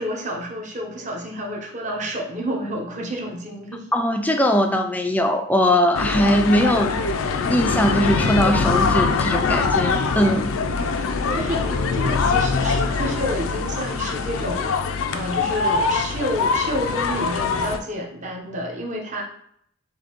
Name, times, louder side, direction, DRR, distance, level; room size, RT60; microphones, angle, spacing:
voice 1, 0.0-3.9 11.3-14.7 15.1-19.2, equal, 35° right, -1 dB, 0.9 m, -29 dB
voice 2, 3.9-6.9 7.5-10.5, equal, 10° left, 5 dB, 0.3 m, -20 dB
sound 1, 5.9-17.8, left 4 dB, 80° left, 0.4 m, -23 dB
6.3 x 2.7 x 3.0 m, 0.68 s
head